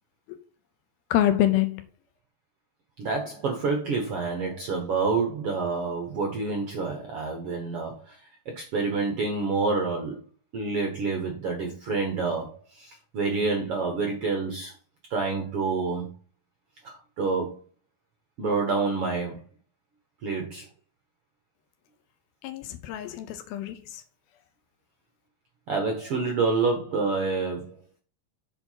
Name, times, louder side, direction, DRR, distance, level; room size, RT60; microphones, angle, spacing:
voice 1, 1.1-1.8 22.4-24.0, left 12 dB, 80° left, 2.5 m, -26 dB
voice 2, 3.0-10.2 10.5-14.7 15.1-16.1 16.8-17.6 18.4-19.4 20.2-20.7 25.7-27.7, right 4 dB, 80° right, 1.3 m, -28 dB
7.9 x 4.7 x 5.7 m
omnidirectional pair, 4.6 m